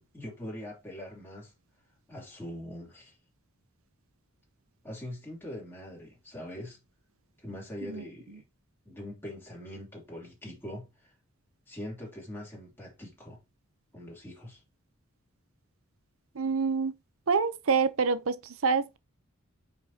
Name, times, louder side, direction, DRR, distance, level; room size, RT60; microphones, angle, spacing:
voice 1, 0.0-1.5 2.1-3.2 4.8-6.8 7.4-8.4 8.8-11.1 11.7-13.4 13.9-14.6, left 1 dB, 10° left, 3.1 m, -42 dB
voice 2, 16.4-16.9 17.3-19.0, right 5 dB, 75° right, 0.7 m, -27 dB
9.2 x 5.1 x 2.8 m
head